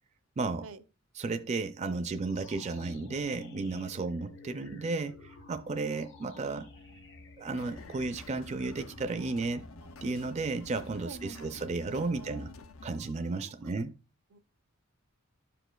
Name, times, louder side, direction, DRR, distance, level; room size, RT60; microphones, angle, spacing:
voice 1, 0.4-0.7 1.1-6.7 7.4-9.7 10.0-12.5 12.8-13.9, right 3 dB, 30° right, 0.4 m, -33 dB
sound 1, 2.1-11.6, left 2 dB, 60° left, 1.0 m, -55 dB
sound 2, 2.8-13.0, left 4 dB, 30° left, 0.5 m, -56 dB
sound 3, 7.6-13.5, left 3 dB, 75° left, 0.5 m, -50 dB
voice 2, 11.0-11.5 12.1-12.6 14.3-14.4, right 4 dB, 80° right, 0.6 m, -46 dB
12.5 x 5.1 x 2.2 m
head